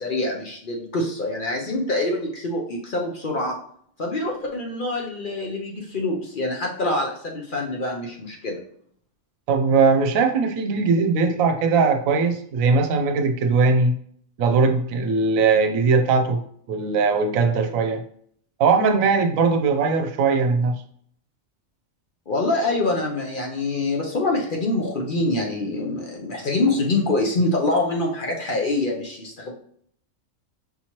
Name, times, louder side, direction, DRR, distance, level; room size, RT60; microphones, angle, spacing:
voice 1, 0.0-3.6 4.0-8.6 22.3-29.5, left 2 dB, 50° left, -1 dB, 0.7 m, -25 dB
voice 2, 9.5-13.9 14.4-16.4 16.7-18.0 18.6-20.7, right 4 dB, 85° right, 6 dB, 1.0 m, -20 dB
5.6 x 2.9 x 2.9 m, 0.63 s
omnidirectional pair, 1.4 m